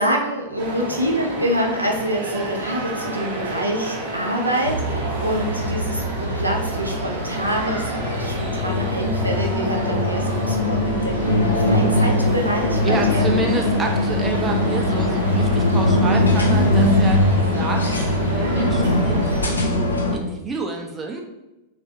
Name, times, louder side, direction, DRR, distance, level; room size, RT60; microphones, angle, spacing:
voice 1, 0.0-13.3 16.4-16.7 18.5-18.9, equal, 85° right, 0 dB, 0.5 m, -26 dB
sound 1, 0.6-19.5, right 2 dB, 55° right, 0.8 m, -31 dB
sound 2, 4.6-20.2, left 1 dB, 80° left, 0.4 m, -21 dB
voice 2, 12.8-17.9 18.3-21.2, right 3 dB, 15° right, 1 dB, 0.5 m, -29 dB
3.1 x 2.5 x 2.7 m, 0.97 s
figure-of-eight pair, 90°, 0 cm